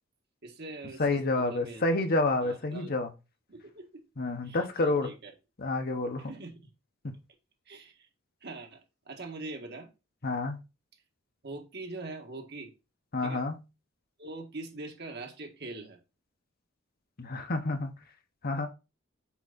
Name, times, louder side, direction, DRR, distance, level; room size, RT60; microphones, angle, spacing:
voice 1, 0.4-1.8 2.4-2.9 3.5-4.0 4.4-5.3 6.2-6.7 7.7-8.1 8.4-9.9 11.4-12.7 13.2-13.4 14.2-16.0, right 2 dB, 55° right, 1.6 m, -43 dB
voice 2, 1.0-3.1 4.2-5.1 5.6-6.3 7.0-7.1 10.2-10.6 13.1-13.6 17.2-17.9 18.4-18.7, left 2 dB, 50° left, 1.0 m, -29 dB
6.1 x 4.8 x 4.0 m
head